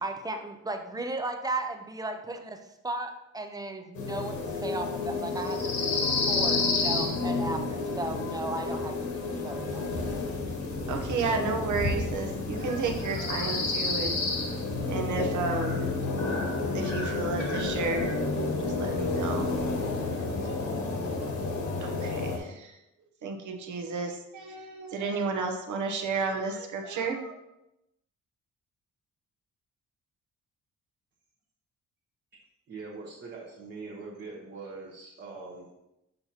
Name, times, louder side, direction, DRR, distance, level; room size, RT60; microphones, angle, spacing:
voice 1, 0.0-10.1, right 2 dB, 15° right, 6 dB, 0.4 m, -36 dB
sound 1, 3.9-22.4, left 3 dB, 65° left, 1.4 m, -30 dB
sound 2, 9.8-21.5, left 6 dB, 40° left, 0.6 m, -42 dB
voice 2, 10.6-14.2 14.8-15.9 16.7-18.2 18.6-19.5 20.0-20.6 21.1-21.2 21.8-22.7 23.2-27.3, right 4 dB, 70° right, 4 dB, 1.0 m, -32 dB
voice 3, 32.7-35.7, right 3 dB, 35° right, -5 dB, 1.1 m, -42 dB
6.7 x 5.7 x 2.9 m, 0.90 s
wide cardioid pair, 170°, 31 cm